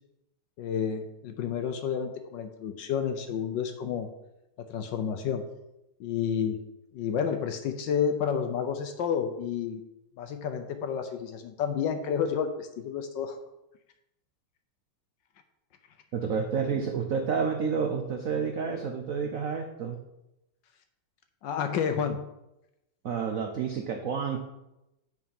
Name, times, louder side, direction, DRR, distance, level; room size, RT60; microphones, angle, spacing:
voice 1, 0.6-4.1 4.7-5.4 6.0-6.6 6.9-9.8 10.2-13.4 21.4-22.3, left 7 dB, 70° left, 7 dB, 1.2 m, -30 dB
voice 2, 16.1-20.0 23.0-24.4, right 6 dB, 80° right, 3 dB, 0.7 m, -29 dB
9.2 x 4.8 x 5.3 m, 0.90 s
omnidirectional pair, 2.4 m